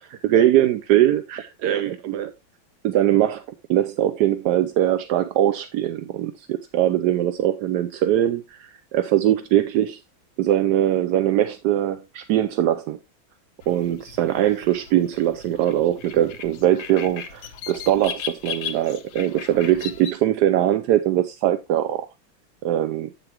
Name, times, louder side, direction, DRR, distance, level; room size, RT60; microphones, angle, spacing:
voice 1, 0.0-2.3 2.8-3.4 3.7-10.0 10.4-13.0 13.7-22.1 22.6-23.1, right 12 dB, 75° right, 1.0 m, -21 dB
sound 1, 13.6-20.1, left 7 dB, 85° left, 1.7 m, -37 dB
8.2 x 6.9 x 2.9 m
omnidirectional pair, 2.2 m